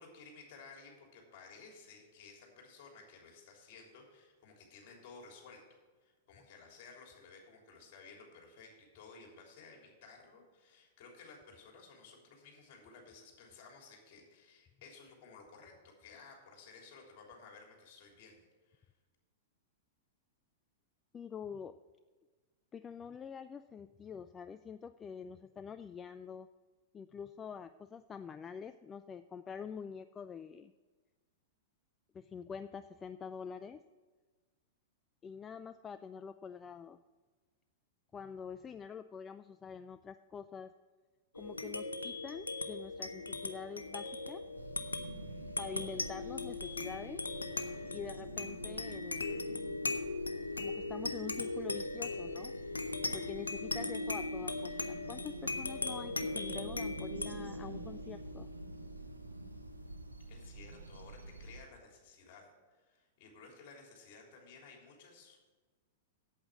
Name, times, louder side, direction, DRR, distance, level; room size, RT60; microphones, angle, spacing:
voice 1, 0.0-15.7 16.0-18.9 60.3-65.5, left 4 dB, 45° left, 1 dB, 3.4 m, -56 dB
voice 2, 21.1-21.8 22.7-26.5 26.9-30.7 32.1-33.8 35.2-37.0 38.1-40.7 41.3-44.4 45.6-47.2 47.9-49.5 50.6-52.5 53.1-58.5, left 6 dB, 20° left, 12 dB, 0.3 m, -46 dB
sound 1, 41.3-60.2, left 3 dB, 85° left, 0.7 m, -39 dB
sound 2, 44.5-61.7, right 3 dB, 80° right, 0.8 m, -48 dB
8.6 x 8.1 x 7.4 m, 1.4 s
figure-of-eight pair, 100°, 0 cm